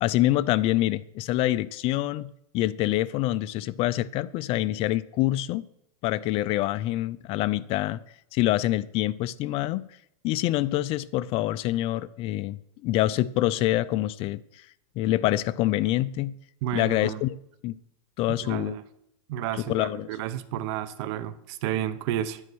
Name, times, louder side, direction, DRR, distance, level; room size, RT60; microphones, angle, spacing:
voice 1, 0.0-5.6 6.0-8.0 8.3-9.9 10.2-14.4 15.0-16.3 16.7-17.4 17.6-17.8 18.2-18.8 19.5-20.1, left 15 dB, 35° left, 0.4 m, -26 dB
voice 2, 16.6-17.2 18.3-18.8 19.3-22.4, right 11 dB, 55° right, 0.9 m, -31 dB
9.8 x 9.6 x 6.2 m
supercardioid pair, 145°, 17 cm